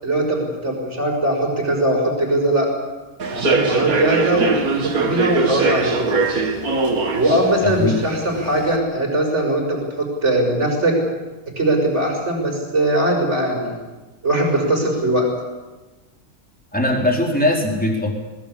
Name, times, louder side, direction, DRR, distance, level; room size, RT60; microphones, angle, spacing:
voice 1, 0.0-2.7 3.3-6.1 7.1-11.0 11.6-13.7 14.2-15.3, right 1 dB, 50° right, 1 dB, 6.7 m, -20 dB
Human voice / Subway metro underground, 3.2-8.7, right 4 dB, 85° right, 2.4 m, -22 dB
voice 2, 7.6-7.9 16.7-18.1, left 1 dB, 5° left, 0 dB, 4.3 m, -20 dB
21.5 x 21.5 x 8.7 m, 1.2 s
omnidirectional pair, 1.5 m